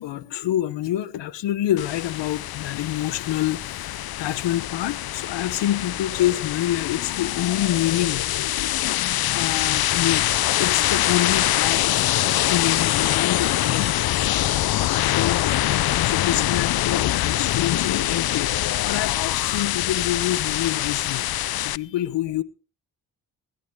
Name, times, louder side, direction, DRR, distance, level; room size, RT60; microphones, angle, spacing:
voice 1, 0.0-8.3 9.3-10.3 10.6-13.9 14.2-14.7 15.0-22.4, left 13 dB, 90° left, 1.1 m, -27 dB
sound 1, 1.8-21.8, left 14 dB, 60° left, 0.6 m, -24 dB
22.5 x 11.5 x 3.6 m
cardioid pair, 60°, 42 cm